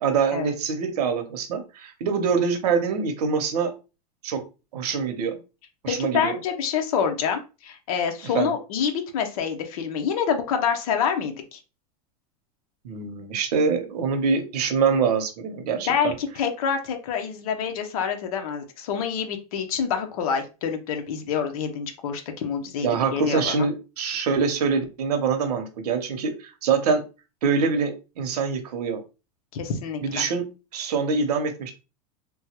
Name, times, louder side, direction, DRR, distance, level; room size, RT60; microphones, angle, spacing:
voice 1, 0.0-3.7 4.2-4.4 4.7-5.3 5.8-6.3 8.3-8.5 12.8-16.1 22.8-27.0 27.4-29.0 30.0-31.7, right 5 dB, 90° right, 7 dB, 0.8 m, -24 dB
voice 2, 5.9-11.6 15.7-23.7 29.5-30.3, left 7 dB, 65° left, 5 dB, 0.8 m, -27 dB
3.4 x 2.3 x 2.9 m, 0.30 s
supercardioid pair, 155°, 20 cm